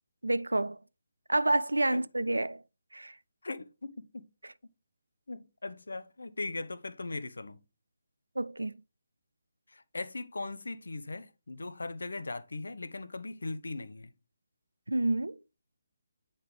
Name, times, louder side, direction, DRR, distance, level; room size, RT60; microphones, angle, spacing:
voice 1, 0.2-0.8 1.3-2.6 2.9-3.1 4.4-4.5 8.4-8.7 14.9-15.4, right 2 dB, 75° right, 0.3 m, -29 dB
voice 2, 3.4-4.3 5.3-7.6 9.7-14.1, left 3 dB, 65° left, 0.6 m, -39 dB
8.8 x 3.9 x 3.6 m
figure-of-eight pair, 145°, 0 cm